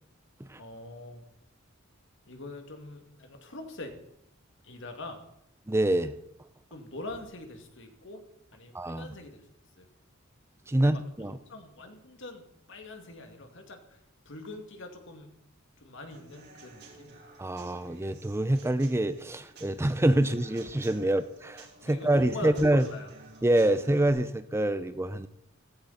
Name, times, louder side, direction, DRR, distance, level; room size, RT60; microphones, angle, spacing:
voice 1, 0.6-1.2 2.3-3.9 4.6-5.2 6.7-8.2 8.5-9.4 9.8-9.9 10.7-14.0 14.3-15.3 15.8-17.1 21.0-21.1 21.9-23.1, left 2 dB, 65° left, 5 dB, 2.5 m, -43 dB
voice 2, 5.7-6.1 8.7-9.1 10.7-11.3 17.4-22.8 23.4-25.3, right 1 dB, 15° right, 12 dB, 0.5 m, -26 dB
Human voice / Acoustic guitar / Drum, 16.1-24.1, right 3 dB, 55° right, 3.7 m, -52 dB
16.0 x 15.5 x 4.3 m, 0.77 s
head